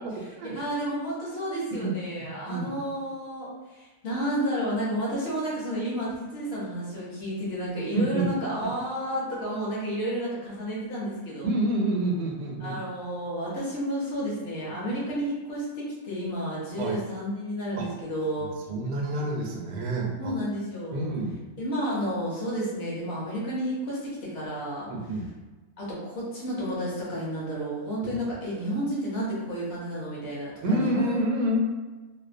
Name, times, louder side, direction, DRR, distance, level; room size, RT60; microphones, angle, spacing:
voice 1, 0.4-11.5 12.6-18.5 20.2-21.1 21.6-24.9 25.8-31.2, equal, 55° left, -6 dB, 0.8 m, -31 dB
voice 2, 2.2-2.7 7.9-8.3 8.6-8.7 11.4-12.8 16.8-17.0 17.8-17.9 18.4-20.3 20.9-21.3 24.9-25.3 28.0-28.1 30.6-31.6, right 1 dB, 85° right, -1 dB, 1.1 m, -28 dB
2.7 x 2.0 x 2.5 m, 1.2 s
omnidirectional pair, 1.6 m